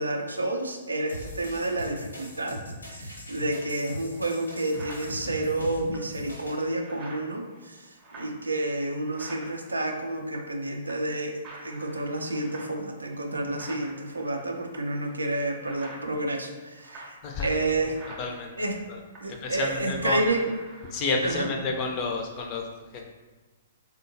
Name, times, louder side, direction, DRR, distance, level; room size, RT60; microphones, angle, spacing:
voice 1, 0.0-7.8 8.1-17.2 17.4-18.0 18.6-18.8 19.2-20.5 21.2-21.5, right 2 dB, 80° right, 3 dB, 0.4 m, -30 dB
sound 1, 1.1-6.6, equal, 80° left, 0.8 m, -41 dB
sound 2, 3.8-3.9 4.3-10.6 10.9-11.2 11.4-20.0 20.2-21.3, right 2 dB, 25° right, 0.7 m, -48 dB
voice 2, 18.2-18.5 18.9-19.0 19.2-20.2 20.9-22.7 22.9-23.1, left 3 dB, 35° left, 2 dB, 0.4 m, -30 dB
3.6 x 2.1 x 2.6 m, 1.3 s
figure-of-eight pair, 115°, 0 cm